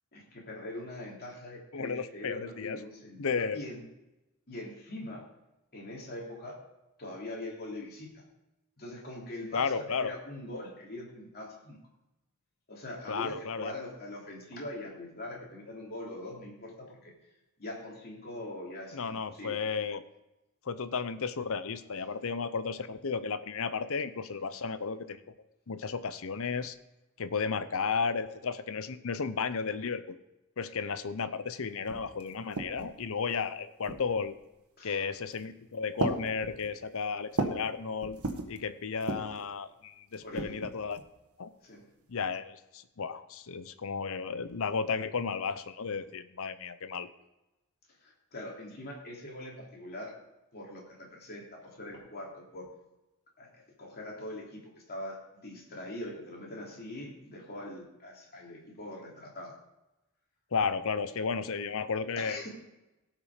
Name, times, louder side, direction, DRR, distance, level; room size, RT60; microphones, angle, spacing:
voice 1, 0.1-3.8 4.5-5.2 5.7-6.6 7.0-8.2 8.8-11.8 12.7-17.1 17.6-19.6 34.8-35.0 40.2-40.6 41.6-41.8 48.0-50.1 50.5-52.7 53.4-59.5 62.2-62.5, left 1 dB, 45° left, -2 dB, 3.2 m, -42 dB
voice 2, 1.7-2.8 3.2-3.6 9.5-10.1 13.1-13.7 18.9-20.0 20.6-25.2 25.7-26.8 27.2-30.2 30.6-34.3 34.8-38.2 38.5-41.0 41.4-41.5 42.1-47.1 60.5-62.4, left 5 dB, 65° left, 13 dB, 0.7 m, -33 dB
sound 1, 31.5-31.6 31.9-33.0 33.8-34.3 35.2-35.5 36.0-37.7 38.0-38.6 39.0-39.4 40.1-41.1, right 2 dB, 75° right, 1.5 m, -36 dB
17.5 x 6.0 x 5.0 m, 0.98 s
head